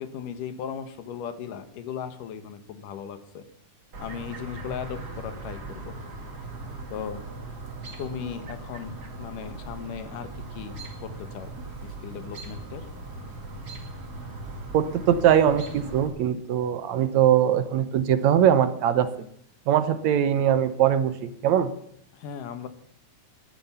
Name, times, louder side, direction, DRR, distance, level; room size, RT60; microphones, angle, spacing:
voice 1, 0.0-3.5 4.0-6.0 6.9-7.2 8.0-8.9 9.2-11.5 11.8-12.9 22.1-22.7, left 8 dB, 90° left, 10 dB, 2.9 m, -37 dB
Chirp tweet, 3.9-16.1, right 2 dB, 35° right, 2.5 m, -39 dB
voice 2, 14.7-19.1 19.7-21.7, right 9 dB, 70° right, 12 dB, 2.0 m, -21 dB
14.5 x 10.5 x 7.0 m, 0.69 s
omnidirectional pair, 3.6 m